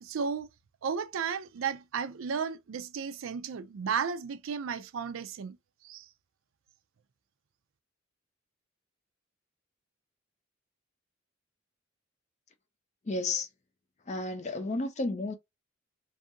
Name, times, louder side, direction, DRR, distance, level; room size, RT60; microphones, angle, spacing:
voice 1, 0.0-0.5 0.8-5.6 5.8-6.1, right 6 dB, 80° right, 0.4 m, -34 dB
voice 2, 13.1-13.5 14.1-15.3, left 2 dB, 35° left, 0.5 m, -32 dB
2.6 x 2.5 x 2.6 m
head